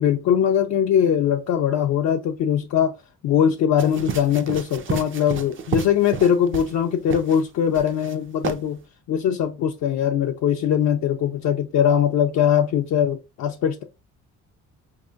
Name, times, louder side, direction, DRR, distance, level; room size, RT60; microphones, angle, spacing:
voice 1, 0.0-2.9 3.2-8.8 9.1-13.8, left 9 dB, 65° left, 0.5 m, -21 dB
sound 1, 3.8-6.8 7.1-7.4 7.7-8.1 8.4-8.6, right 6 dB, 40° right, 0.5 m, -31 dB
4.8 x 2.7 x 2.4 m
cardioid pair, 90°, 30 cm